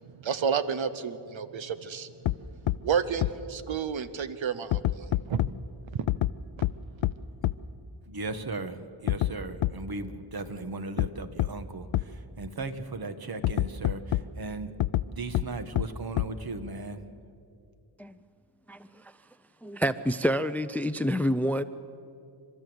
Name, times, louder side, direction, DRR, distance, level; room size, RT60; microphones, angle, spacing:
voice 1, 0.2-2.1 2.8-5.4 6.6-6.7, right 7 dB, 70° right, 12 dB, 0.9 m, -30 dB
sound 1, 2.2-2.3 2.7-2.8 3.2-3.3 4.7-5.5 6.1-6.3 6.6-6.7 7.0-7.1 7.4-7.5 9.1-9.3 9.6-9.7 11.0-11.1 11.4-11.5 11.9-12.0 13.4-14.2 14.8-15.0 15.3-15.4 15.7-15.8 16.2-16.3, left 14 dB, 70° left, 0.6 m, -25 dB
voice 2, 8.0-14.7 15.0-17.0, right 3 dB, 50° right, 9 dB, 1.5 m, -37 dB
voice 3, 18.7-19.1 19.6-21.6, equal, 5° left, 13 dB, 0.5 m, -28 dB
29.5 x 12.0 x 8.0 m, 2.5 s
cardioid pair, 75°, 48 cm